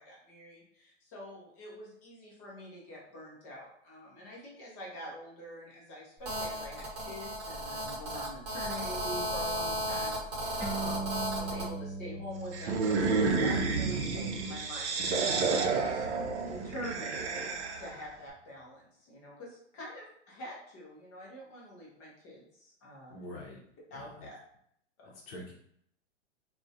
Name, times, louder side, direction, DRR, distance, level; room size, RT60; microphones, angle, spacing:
voice 1, 0.0-11.0 11.4-16.1 16.4-23.2 23.9-24.4 25.0-25.1, equal, 15° left, -4 dB, 0.3 m, -45 dB
Telephone, 6.2-11.7, equal, 35° right, 0.9 m, -35 dB
sound 1, 10.6-17.4, right 3 dB, 5° right, 0.9 m, -42 dB
sound 2, 12.5-18.0, right 4 dB, 75° right, 0.5 m, -30 dB
voice 2, 23.1-23.6 23.9-24.3 25.0-25.5, left 1 dB, 60° left, -2 dB, 0.6 m, -46 dB
2.3 x 2.1 x 2.6 m, 0.70 s
hypercardioid pair, 140°, 35 cm